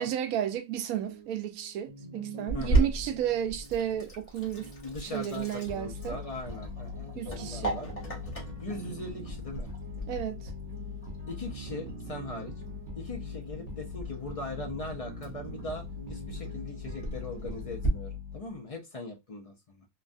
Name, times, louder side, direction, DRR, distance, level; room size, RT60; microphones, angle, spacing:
voice 1, 0.0-4.7 5.0-6.2 7.2-7.8 10.1-10.5, right 10 dB, 80° right, 1.0 m, -33 dB
sound 1, 1.0-17.7, right 4 dB, 30° right, 0.9 m, -49 dB
voice 2, 2.5-2.9 4.8-7.9 8.6-9.7 11.3-12.6 13.0-19.8, left 2 dB, 60° left, 0.3 m, -40 dB
Sink (filling or washing), 2.5-17.9, right 2 dB, 30° left, 0.9 m, -36 dB
sound 2, 5.7-18.6, left 4 dB, 60° right, 1.0 m, -41 dB
3.1 x 2.2 x 2.5 m
omnidirectional pair, 1.5 m